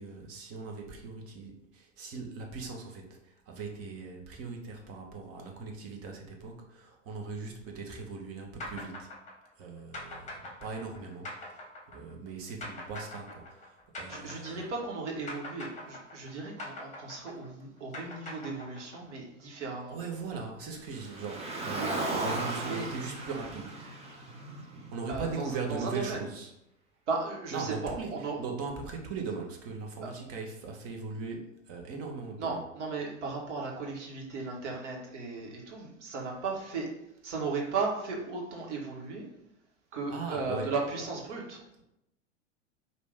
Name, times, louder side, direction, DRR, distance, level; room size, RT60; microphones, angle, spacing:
voice 1, 0.0-9.2 9.6-14.6 19.9-23.8 24.9-26.5 27.5-32.6 40.1-40.7, right 4 dB, 40° right, 2 dB, 1.1 m, -39 dB
sound 1, 8.6-15.0 15.3-19.1, left 2 dB, 20° left, 1.4 m, -42 dB
voice 2, 14.1-20.0 21.8-21.9 22.6-22.9 25.1-26.2 27.1-28.4 30.0-30.1 32.4-36.9 37.2-39.2 39.9-41.6, right 4 dB, 70° right, -1 dB, 1.4 m, -36 dB
Car, 20.9-25.3, right 2 dB, 15° right, 0.9 m, -36 dB
5.0 x 2.7 x 3.4 m, 0.84 s
figure-of-eight pair, 90°, 37 cm